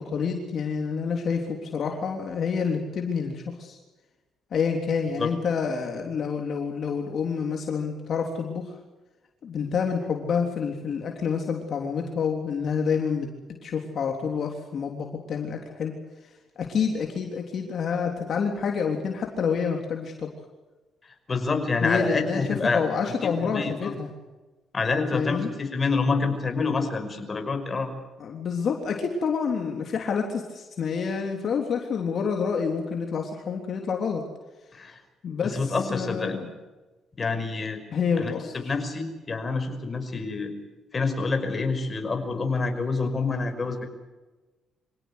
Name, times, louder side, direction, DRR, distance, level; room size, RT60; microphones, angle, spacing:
voice 1, 0.0-3.8 4.5-8.7 9.4-13.3 13.6-15.9 16.6-20.3 21.8-22.4 22.7-24.1 25.1-25.5 28.2-34.2 35.2-36.5 37.9-38.7, left 6 dB, 60° left, 2 dB, 3.5 m, -28 dB
voice 2, 21.3-22.8 23.2-24.0 24.7-27.9 34.7-35.0 35.4-36.4 37.2-37.8 38.2-40.5 40.9-43.9, left 4 dB, 30° left, 6 dB, 5.5 m, -27 dB
26.0 x 17.5 x 8.3 m, 1.2 s
cardioid pair, 90°, 0 cm